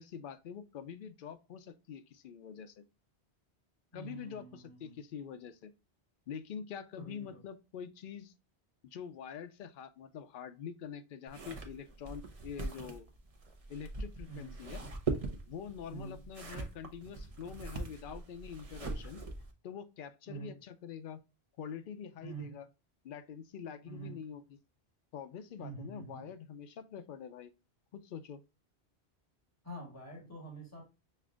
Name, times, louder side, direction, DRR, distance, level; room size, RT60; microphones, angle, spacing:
voice 1, 0.0-2.8 3.9-5.7 6.3-8.3 8.8-13.1 13.7-14.9 15.5-19.2 19.6-21.2 21.6-22.6 23.0-24.4 25.1-27.5 27.9-28.4, left 7 dB, 60° left, 0.7 m, -45 dB
voice 2, 3.9-5.0 7.0-7.4 14.3-14.5 15.9-16.2 20.3-20.5 22.2-22.6 23.8-24.2 25.6-26.3 29.6-30.9, right 3 dB, 15° left, 1.7 m, -46 dB
sound 1, 11.3-19.5, right 3 dB, 35° right, 0.8 m, -41 dB
6.5 x 2.5 x 2.3 m
omnidirectional pair, 1.1 m